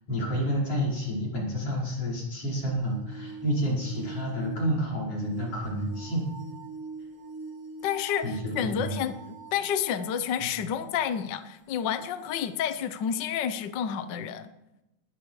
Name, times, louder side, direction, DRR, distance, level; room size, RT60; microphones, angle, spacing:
voice 1, 0.1-6.2 8.2-8.9 10.4-10.5, equal, 50° left, -4 dB, 6.3 m, -29 dB
sound 1, 2.6-10.2 10.9-11.0 12.0-12.1, right 5 dB, 85° right, 4.9 m, -43 dB
voice 2, 7.8-9.1 9.5-14.5, left 8 dB, 90° left, 10 dB, 0.9 m, -30 dB
20.0 x 13.5 x 4.9 m, 0.94 s
omnidirectional pair, 3.4 m